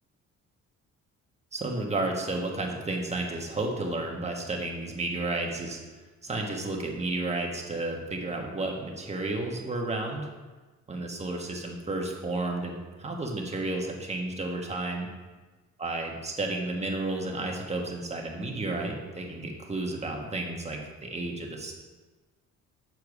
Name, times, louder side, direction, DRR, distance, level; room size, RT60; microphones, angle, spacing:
voice 1, 1.5-5.8 6.2-10.3 10.9-15.1 15.8-21.7, right 2 dB, 20° right, 0 dB, 1.5 m, -32 dB
6.8 x 4.5 x 6.0 m, 1.3 s
cardioid pair, 90°, 30 cm